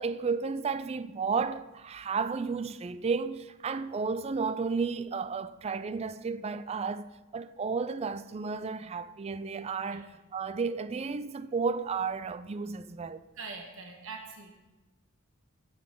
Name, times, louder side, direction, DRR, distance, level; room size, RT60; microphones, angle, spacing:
voice 1, 0.0-13.2, right 5 dB, 30° right, 0.3 m, -33 dB
voice 2, 13.3-14.5, right 4 dB, 65° right, 1.4 m, -43 dB
15.5 x 8.1 x 3.8 m
head